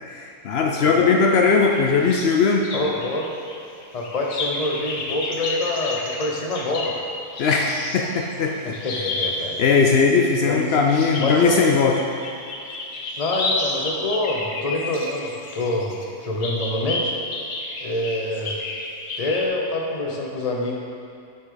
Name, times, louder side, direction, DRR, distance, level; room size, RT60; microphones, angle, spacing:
voice 1, 0.1-2.7 7.4-8.8 9.6-12.0, left 4 dB, 80° left, 1 dB, 0.5 m, -19 dB
sound 1, 1.7-2.4 2.6-9.6 10.7-16.0 16.4-19.5, left 2 dB, 60° left, 1.2 m, -31 dB
voice 2, 2.7-3.3 3.9-7.0 8.8-9.6 10.4-10.7 11.2-11.6 13.2-17.1 17.8-18.6 19.2-20.8, left 2 dB, 30° left, -1 dB, 0.8 m, -26 dB
9.5 x 6.3 x 3.9 m, 2.5 s
omnidirectional pair, 1.7 m